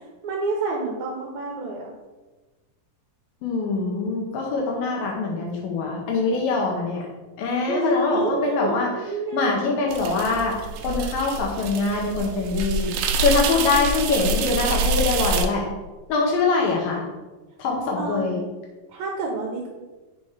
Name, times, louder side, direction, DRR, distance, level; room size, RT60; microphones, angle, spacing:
voice 1, 0.2-1.9 7.7-9.6 18.0-18.2 18.9-19.7, right 2 dB, 70° right, 0 dB, 1.9 m, -28 dB
voice 2, 3.4-7.1 7.4-8.9 9.3-15.6 16.1-17.0 17.6-18.4, left 4 dB, 80° left, -1 dB, 2.6 m, -24 dB
sound 1, 9.9-15.5, right 3 dB, 85° right, 2.4 m, -26 dB
6.3 x 4.2 x 4.9 m, 1.2 s
omnidirectional pair, 4.1 m